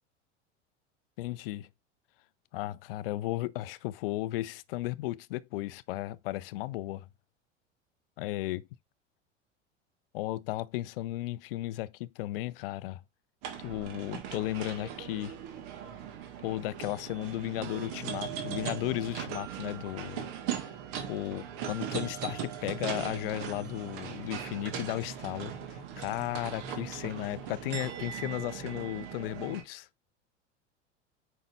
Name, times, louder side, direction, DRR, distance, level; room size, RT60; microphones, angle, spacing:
voice 1, 1.2-1.7 2.5-7.1 8.2-8.7 10.1-13.0 13.6-15.4 16.4-20.3 20.6-20.7 21.1-29.9, left 16 dB, 50° left, 0.5 m, -35 dB
sound 1, 13.4-29.6, right 8 dB, 50° right, 1.8 m, -39 dB
8.8 x 5.7 x 2.5 m
figure-of-eight pair, 80°, 37 cm